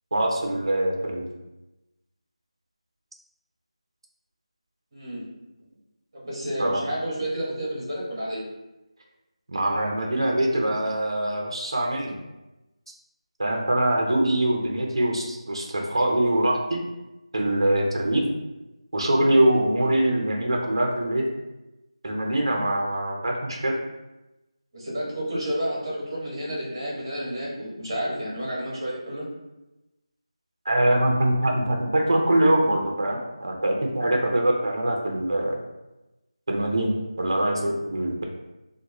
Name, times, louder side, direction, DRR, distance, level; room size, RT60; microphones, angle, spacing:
voice 1, 0.1-1.3 6.6-6.8 9.5-12.2 13.4-16.8 17.3-18.2 18.9-21.3 22.0-23.8 30.6-35.6 36.5-38.2, right 1 dB, 50° right, 1 dB, 0.6 m, -23 dB
voice 2, 4.9-5.2 6.1-8.4 24.7-29.2, equal, 30° right, -5 dB, 1.3 m, -30 dB
3.5 x 2.2 x 3.0 m, 0.99 s
figure-of-eight pair, 175°, 3 cm